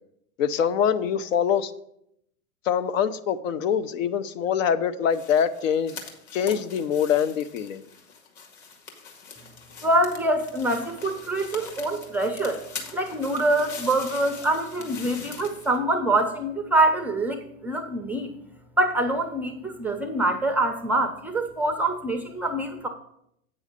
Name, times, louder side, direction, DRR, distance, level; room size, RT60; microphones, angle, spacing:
voice 1, 0.4-1.7 2.6-6.0 6.3-7.8, left 8 dB, 65° left, 12 dB, 0.7 m, -24 dB
sound 1, 5.1-15.8, left 5 dB, 45° left, 1.9 m, -42 dB
voice 2, 9.8-12.6 12.9-18.3 18.8-22.9, right 1 dB, 5° right, 5 dB, 0.5 m, -25 dB
8.5 x 6.2 x 5.1 m, 0.75 s
hypercardioid pair, 115°, 42 cm